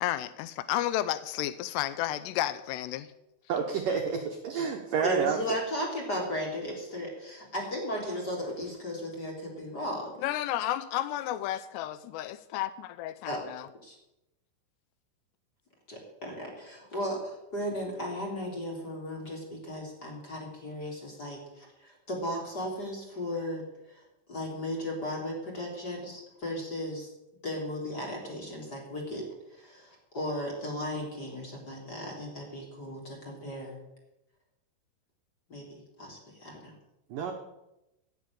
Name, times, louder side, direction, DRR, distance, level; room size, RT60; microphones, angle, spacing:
voice 1, 0.0-3.1 10.2-13.7, left 13 dB, 90° left, 14 dB, 2.4 m, -32 dB
voice 2, 3.5-4.0 4.6-5.4 37.1-37.3, right 6 dB, 90° right, 3 dB, 1.8 m, -28 dB
voice 3, 5.0-10.1 13.2-13.5 13.8-14.0 15.9-24.0 24.3-27.1 27.4-33.8 35.5-36.8, equal, 25° left, -1 dB, 3.5 m, -36 dB
16.5 x 7.7 x 8.8 m, 0.92 s
omnidirectional pair, 5.7 m